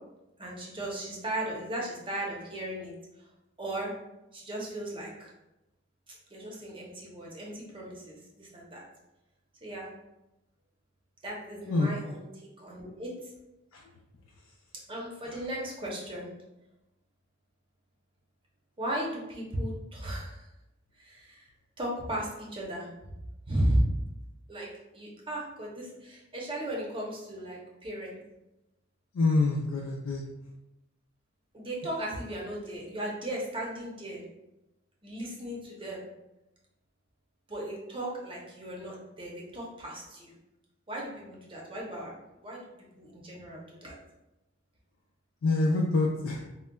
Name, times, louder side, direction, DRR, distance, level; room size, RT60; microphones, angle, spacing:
voice 1, 0.4-2.9 3.6-3.9 4.3-5.3 6.1-8.8 9.6-9.9 11.2-12.3 12.6-13.3 14.9-16.3 18.8-20.4 21.0-21.5 21.8-22.9 23.5-23.9 24.5-28.2 31.5-34.2 35.0-36.0 37.5-40.4 40.9-42.1 42.4-42.7 43.0-43.9, right 1 dB, 25° right, -3 dB, 0.6 m, -35 dB
voice 2, 29.1-30.2 45.4-46.4, left 3 dB, 85° left, -2 dB, 0.4 m, -26 dB
3.7 x 2.1 x 2.2 m, 0.94 s
head